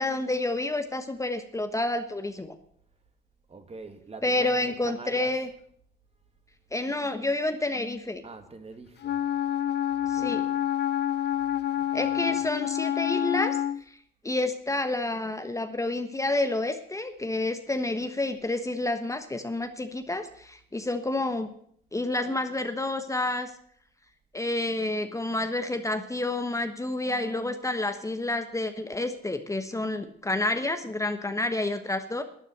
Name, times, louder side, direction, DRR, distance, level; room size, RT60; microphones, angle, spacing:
voice 1, 0.0-2.5 4.2-5.5 6.7-8.2 10.1-10.4 11.9-13.6 13.9-14.0 14.2-21.5 21.9-23.5 24.3-32.2, left 2 dB, 15° left, 1.3 m, -29 dB
voice 2, 3.5-5.3 8.2-9.2 10.0-10.6 11.9-12.5, right 3 dB, 30° right, 2.1 m, -44 dB
Wind instrument woodwind instrument, 9.0-13.8, left 11 dB, 60° left, 0.5 m, -28 dB
12.0 x 9.8 x 8.0 m
cardioid pair, 90°, 20 cm